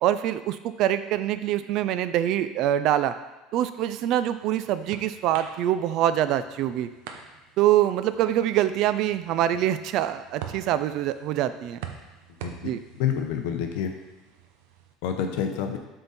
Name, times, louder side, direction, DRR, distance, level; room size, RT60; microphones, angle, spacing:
voice 1, 0.0-3.1 3.5-6.9 7.6-11.8 12.6-12.8, right 12 dB, 45° right, 12 dB, 0.3 m, -24 dB
sound 1, 3.9-14.9, right 8 dB, 80° right, 0.7 m, -45 dB
voice 2, 12.4-13.9 15.0-15.8, left 8 dB, 70° left, 5 dB, 0.7 m, -28 dB
7.7 x 3.7 x 4.1 m, 1.2 s
cardioid pair, 175°, 0 cm